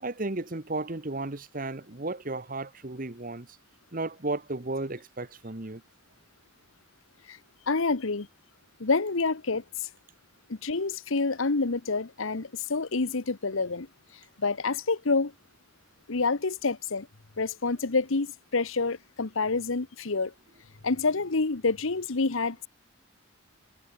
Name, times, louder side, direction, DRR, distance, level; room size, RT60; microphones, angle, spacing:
voice 1, 0.0-3.5 3.9-5.8, right 2 dB, 40° right, 1.2 m, -34 dB
voice 2, 7.7-8.3 8.8-9.6 10.5-13.9 14.4-15.3 16.1-17.1 17.4-18.3 18.5-20.3 20.8-22.7, left 3 dB, 75° left, 1.1 m, -27 dB
head